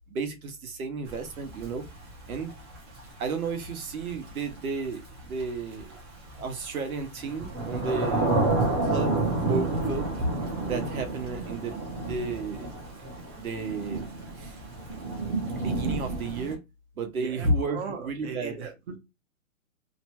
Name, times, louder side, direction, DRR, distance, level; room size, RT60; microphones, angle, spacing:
voice 1, 0.1-1.8 2.3-2.5 3.2-5.9 6.4-8.3 8.8-10.3 10.7-12.7 13.4-14.1 14.3-14.6 15.5-16.6 17.0-18.7, right 3 dB, 85° right, 0.9 m, -32 dB
Thunder / Rain, 1.1-16.5, right 2 dB, 20° right, 0.5 m, -30 dB
voice 2, 17.2-17.5 17.7-19.0, right 6 dB, 50° right, 0.9 m, -38 dB
2.8 x 2.2 x 2.8 m
hypercardioid pair, 155°, 42 cm